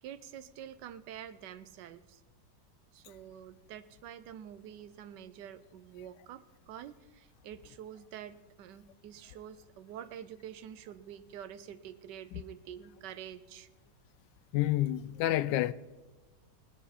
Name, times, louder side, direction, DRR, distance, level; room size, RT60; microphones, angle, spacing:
voice 1, 0.0-2.2 2.9-13.7, right 10 dB, 80° right, 1.3 m, -47 dB
voice 2, 14.5-15.7, left 14 dB, 85° left, 1.2 m, -29 dB
21.5 x 9.2 x 4.2 m
omnidirectional pair, 1.9 m